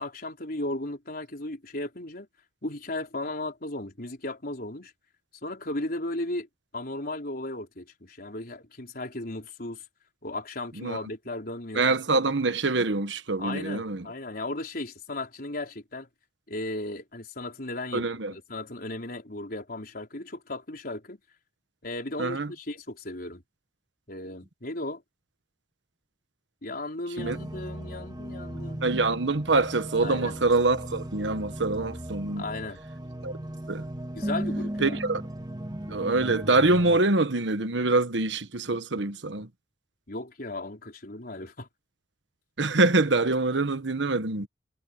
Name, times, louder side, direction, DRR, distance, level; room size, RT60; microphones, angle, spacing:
voice 1, 0.0-2.3 2.6-4.9 5.4-6.5 6.7-9.8 10.2-11.8 13.4-16.1 16.5-18.0 18.3-21.2 21.8-23.4 24.1-25.0 26.6-28.9 30.0-30.4 32.4-32.8 34.1-35.0 40.1-41.7, left 2 dB, 55° left, 4.3 m, -35 dB
voice 2, 11.7-14.1 17.9-18.3 22.2-22.5 27.2-27.4 28.8-32.4 33.2-33.3 33.7-33.9 34.8-35.2 35.9-39.5 42.6-44.5, right 3 dB, 85° right, 1.3 m, -25 dB
sound 1, 27.2-37.0, right 1 dB, 25° right, 2.1 m, -36 dB
head